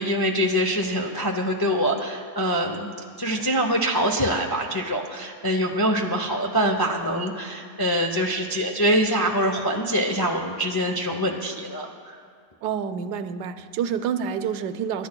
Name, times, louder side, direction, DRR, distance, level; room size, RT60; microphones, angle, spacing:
voice 1, 0.0-2.9 3.2-12.1, equal, 30° left, 2 dB, 0.4 m, -24 dB
voice 2, 12.6-15.1, right 7 dB, 85° right, 11 dB, 1.2 m, -28 dB
27.5 x 12.0 x 2.2 m, 2.1 s
omnidirectional pair, 1.7 m